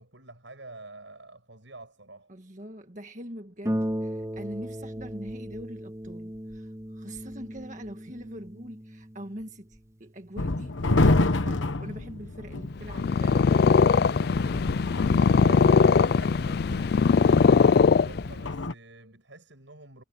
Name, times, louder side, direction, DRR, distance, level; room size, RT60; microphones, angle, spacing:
voice 1, 0.0-2.3 15.4-20.0, right 2 dB, 75° right, 7.1 m, -46 dB
voice 2, 2.3-14.1, right 1 dB, 40° right, 1.7 m, -43 dB
Harp, 3.6-12.8 13.7-13.8 14.2-14.3, equal, 15° right, 3.0 m, -37 dB
sound 1, 10.4-18.7, left 2 dB, 80° left, 1.1 m, -29 dB
Purr, 12.8-18.5, left 5 dB, 55° left, 0.3 m, -20 dB
head